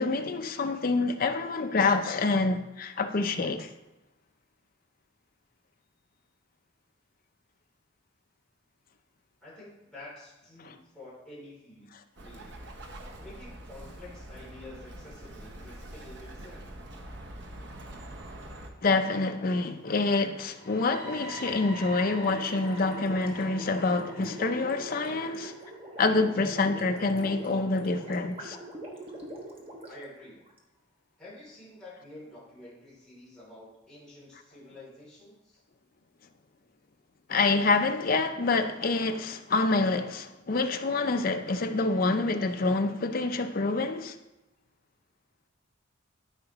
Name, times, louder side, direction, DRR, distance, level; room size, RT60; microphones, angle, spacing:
voice 1, 0.0-3.7 10.6-10.7 18.8-25.5 26.0-28.6 37.3-44.2, left 3 dB, 45° left, 0.5 m, -27 dB
voice 2, 9.4-12.6 13.2-16.6 29.8-30.4 31.2-35.6, left 1 dB, 5° left, 3.0 m, -49 dB
Bird, 12.2-18.7, right 1 dB, 60° right, 0.9 m, -44 dB
sound 1, 20.4-28.3, right 1 dB, 75° right, 2.6 m, -46 dB
Gurgling, 22.2-30.6, right 1 dB, 30° right, 1.1 m, -44 dB
12.0 x 4.9 x 3.0 m
head